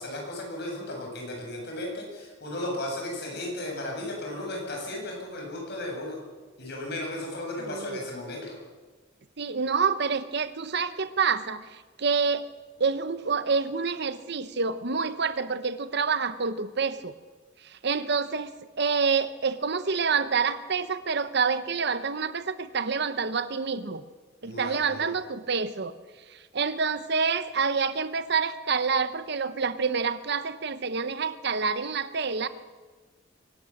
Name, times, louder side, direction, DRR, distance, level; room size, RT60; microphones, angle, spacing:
voice 1, 0.0-6.2 6.6-8.5 24.4-25.1, left 1 dB, 60° left, 0 dB, 7.8 m, -35 dB
voice 2, 7.7-8.0 9.4-12.5 12.8-17.1 17.6-18.5 18.8-24.0 24.4-25.9 26.3-32.5, right 5 dB, 60° right, 12 dB, 1.0 m, -27 dB
23.5 x 18.5 x 7.4 m, 1.3 s
head